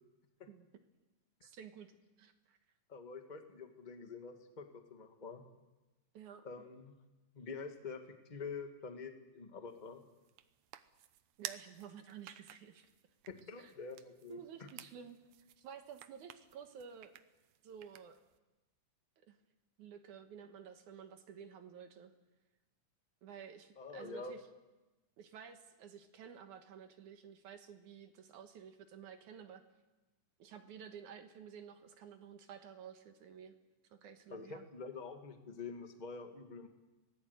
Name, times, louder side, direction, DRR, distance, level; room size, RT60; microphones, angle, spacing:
voice 1, 1.4-1.9 2.2-2.6 6.1-6.4 11.4-12.9 13.6-13.7 14.3-15.2 15.6-17.1 17.6-18.2 19.2-19.4 19.8-22.1 23.2-24.4 25.2-29.6 30.4-33.5 33.8-34.7, right 7 dB, 70° right, 7 dB, 2.7 m, -52 dB
voice 2, 2.9-5.4 6.4-6.9 7.3-10.0 13.3-14.7 23.8-24.3 34.3-36.7, left 4 dB, 25° left, 5 dB, 1.1 m, -47 dB
sound 1, 9.7-18.4, right 12 dB, 90° right, 2.6 m, -54 dB
25.5 x 19.0 x 8.1 m, 1.1 s
omnidirectional pair, 3.7 m